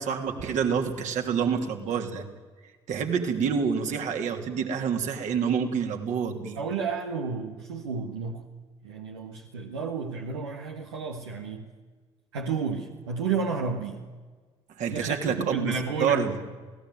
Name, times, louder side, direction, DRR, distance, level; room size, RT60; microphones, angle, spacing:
voice 1, 0.0-2.2 2.9-6.6 14.8-16.4, right 6 dB, 60° right, 4 dB, 3.2 m, -27 dB
voice 2, 6.5-8.4 8.8-11.7 12.3-14.0 14.9-16.3, right 5 dB, 85° right, 2 dB, 1.6 m, -31 dB
27.5 x 17.5 x 9.3 m, 1.4 s
hypercardioid pair, 50°, 14 cm